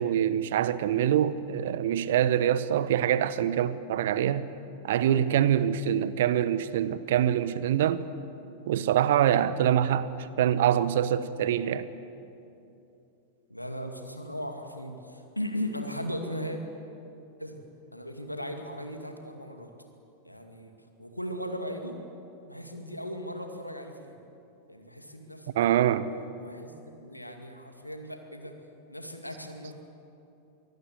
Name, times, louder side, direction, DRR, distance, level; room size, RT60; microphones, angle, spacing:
voice 1, 0.0-4.5 4.8-8.1 8.7-10.1 10.4-11.9 25.6-26.1, right 10 dB, 55° right, 0.9 m, -25 dB
voice 2, 13.5-16.6 17.4-17.6 17.9-19.7 20.2-20.7 21.0-22.0 22.4-24.2 24.7-25.5 25.8-25.9 26.4-28.5 28.9-29.7, equal, 90° left, 2.2 m, -37 dB
24.0 x 17.5 x 8.4 m
figure-of-eight pair, 90°, 0 cm